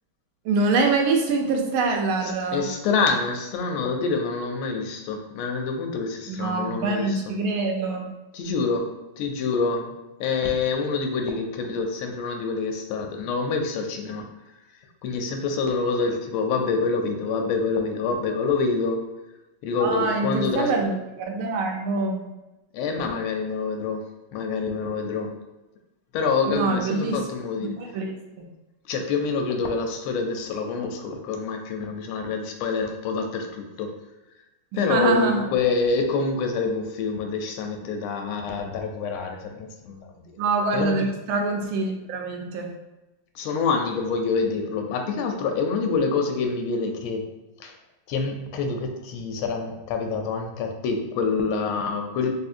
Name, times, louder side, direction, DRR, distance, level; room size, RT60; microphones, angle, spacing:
voice 1, 0.4-2.6 6.3-8.1 19.8-22.2 26.5-27.2 27.6-28.1 34.7-35.5 40.4-42.7, right 3 dB, 90° right, 2 dB, 1.4 m, -25 dB
voice 2, 2.2-7.3 8.3-9.9 10.2-14.3 15.0-19.0 19.6-20.7 22.7-24.0 24.3-25.3 26.1-27.7 28.9-33.9 34.7-40.4 40.7-41.1 43.3-47.2 47.6-47.7 48.1-52.3, left 4 dB, 85° left, 4 dB, 1.4 m, -26 dB
3.6 x 2.7 x 2.5 m, 1.0 s
omnidirectional pair, 2.2 m